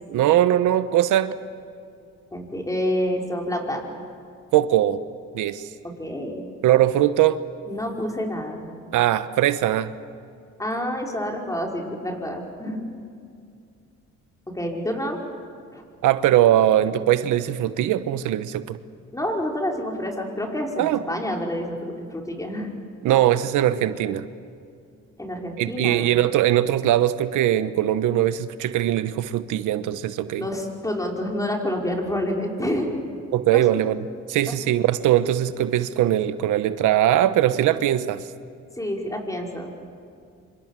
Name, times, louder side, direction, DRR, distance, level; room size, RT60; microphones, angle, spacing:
voice 1, 0.1-1.3 4.5-5.0 5.3-5.6 6.6-7.4 8.9-9.9 16.0-18.8 20.8-21.0 23.0-24.3 25.6-30.5 33.3-34.0 34.3-38.2, right 12 dB, 90° right, 12 dB, 1.1 m, -21 dB
voice 2, 2.3-3.9 6.0-6.5 7.7-8.7 10.6-12.8 14.5-15.2 15.7-15.8 19.1-22.7 25.2-26.1 30.4-33.0 33.5-33.6 38.8-39.7, left 1 dB, 10° left, 0 dB, 5.4 m, -28 dB
27.0 x 26.0 x 7.6 m, 2.4 s
cardioid pair, 90°, 30 cm